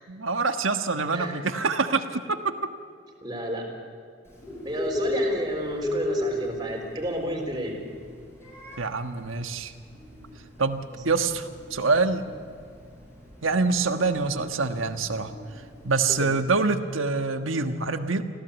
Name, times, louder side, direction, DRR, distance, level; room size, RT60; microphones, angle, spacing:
voice 1, 0.1-2.2 8.8-9.7 10.6-12.2 13.4-15.3 15.8-18.2, right 4 dB, 80° right, 8 dB, 1.4 m, -25 dB
voice 2, 3.2-3.7 4.6-7.8 16.1-16.3, equal, 20° right, 1 dB, 3.8 m, -31 dB
Bird, 4.3-16.4, left 1 dB, 15° left, 6.6 m, -35 dB
26.5 x 16.0 x 8.2 m, 2.3 s
head